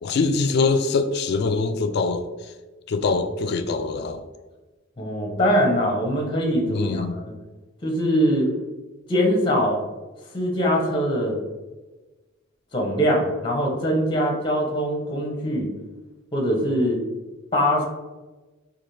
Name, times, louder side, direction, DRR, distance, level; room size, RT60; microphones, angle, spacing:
voice 1, 0.0-2.5 2.9-4.2 6.7-7.2, left 4 dB, 55° left, 9 dB, 0.3 m, -23 dB
voice 2, 5.0-7.2 7.8-8.5 9.1-9.8 10.3-11.4 12.7-15.7 16.3-17.0 17.5-17.8, equal, 25° left, 0 dB, 0.7 m, -22 dB
4.0 x 2.4 x 3.1 m, 1.2 s
head